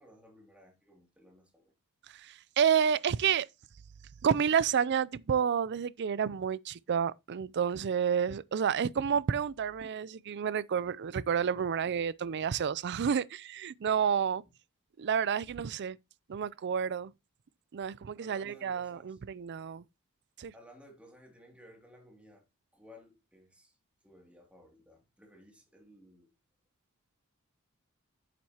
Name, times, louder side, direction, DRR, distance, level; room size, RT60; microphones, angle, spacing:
voice 1, 0.0-1.7 18.2-19.2 20.5-22.5 22.7-23.8 24.0-26.3, equal, 5° right, 2.4 m, -57 dB
voice 2, 2.1-3.5 4.2-14.4 15.0-16.0 16.3-17.1 17.7-19.8 20.4-20.5, right 7 dB, 50° right, 0.4 m, -30 dB
9.3 x 7.5 x 2.8 m
head